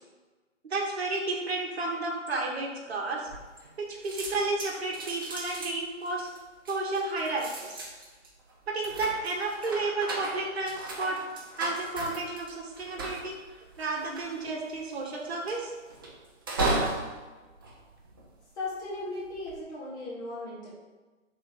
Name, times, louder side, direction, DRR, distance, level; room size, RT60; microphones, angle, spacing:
voice 1, 0.7-3.3 3.8-6.3 6.7-7.8 8.7-11.2 11.6-15.7, right 3 dB, 55° right, 0 dB, 1.6 m, -32 dB
sound 1, 3.3-3.8 4.0-18.6 19.2-19.6, right 2 dB, 20° right, 0.5 m, -36 dB
voice 2, 18.5-20.7, left 2 dB, 10° left, -7 dB, 0.9 m, -37 dB
5.5 x 3.9 x 5.4 m, 1.3 s
figure-of-eight pair, 140°, 38 cm